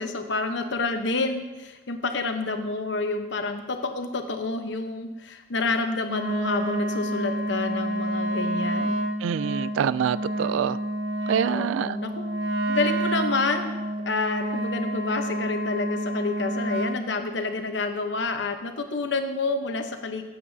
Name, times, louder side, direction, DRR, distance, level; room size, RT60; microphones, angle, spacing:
voice 1, 0.0-9.0 11.4-12.1 12.7-13.8 14.0-20.2, left 3 dB, 70° left, 6 dB, 0.9 m, -29 dB
Wind instrument woodwind instrument, 6.0-17.1, right 1 dB, 65° right, 0.8 m, -29 dB
voice 2, 9.2-10.8 11.3-11.9, right 8 dB, 85° right, 18 dB, 0.3 m, -25 dB
14.0 x 8.3 x 2.7 m, 1.1 s
head